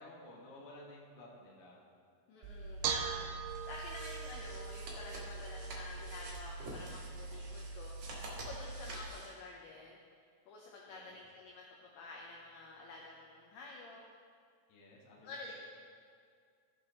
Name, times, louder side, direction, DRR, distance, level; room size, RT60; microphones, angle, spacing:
voice 1, 0.0-1.8 3.1-3.3 10.9-11.2 14.7-15.5, left 1 dB, 60° left, -3 dB, 2.0 m, -54 dB
voice 2, 2.3-3.2 3.6-10.0 10.5-14.0 15.2-15.5, left 3 dB, 80° left, -2 dB, 2.4 m, -49 dB
Bell / Dishes pots and pans, 2.4-9.1, right 5 dB, 80° right, 2.6 m, -42 dB
sound 1, 3.5-9.3, right 2 dB, 55° right, 2.0 m, -50 dB
16.0 x 7.5 x 3.0 m, 2.2 s
omnidirectional pair, 5.5 m